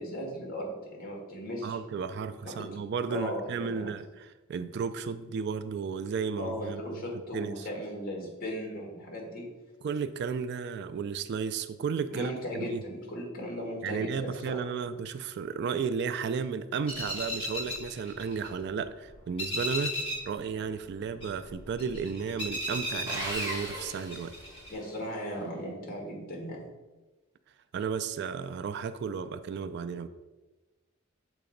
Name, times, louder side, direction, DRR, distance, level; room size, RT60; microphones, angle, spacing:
voice 1, 0.0-1.8 2.4-2.8 3.1-3.9 6.4-9.5 12.1-14.6 24.7-26.6, equal, 45° left, -1 dB, 1.7 m, -37 dB
voice 2, 1.6-6.8 7.3-7.7 9.8-12.8 13.8-20.0 20.3-24.3 27.7-30.1, right 6 dB, 55° right, 12 dB, 0.3 m, -33 dB
sound 1, 16.9-18.9 19.1-20.4 20.6-23.8 24.1-24.7, left 1 dB, 25° left, 1.8 m, -35 dB
Sawing, 23.1-25.0, right 1 dB, 15° right, 1.3 m, -37 dB
6.7 x 3.0 x 5.0 m, 1.1 s
head